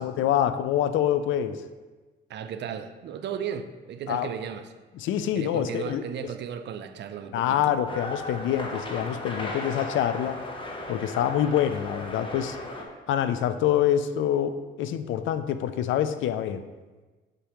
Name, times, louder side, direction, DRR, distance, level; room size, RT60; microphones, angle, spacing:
voice 1, 0.0-1.6 4.1-4.3 5.0-6.0 7.3-10.4 10.9-12.6 13.1-16.7, left 10 dB, 80° left, 11 dB, 0.4 m, -26 dB
voice 2, 2.3-4.7 5.3-7.8, right 8 dB, 60° right, 9 dB, 0.5 m, -35 dB
sound 1, 7.9-12.8, left 1 dB, 25° left, 1.0 m, -36 dB
6.7 x 5.0 x 3.0 m, 1.3 s
cardioid pair, 90°, 20 cm